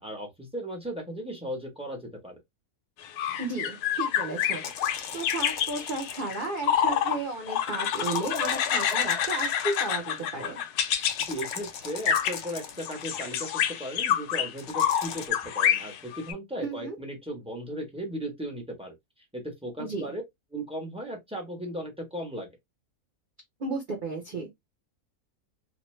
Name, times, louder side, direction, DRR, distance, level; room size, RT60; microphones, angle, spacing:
voice 1, 0.0-2.3 11.2-18.9 19.3-20.2 20.5-22.5, equal, 5° right, 0.5 m, -36 dB
sound 1, 3.0-7.2 7.5-11.6 12.1-12.4 12.8-16.3, left 9 dB, 85° left, 1.1 m, -28 dB
voice 2, 3.4-10.6 16.6-17.0 19.8-20.1 23.6-24.5, right 3 dB, 50° right, 0.6 m, -34 dB
sound 2, 4.4-6.6 7.8-10.1 11.0-13.2 14.6-15.3, left 7 dB, 65° left, 0.8 m, -40 dB
2.5 x 2.2 x 3.0 m
omnidirectional pair, 1.6 m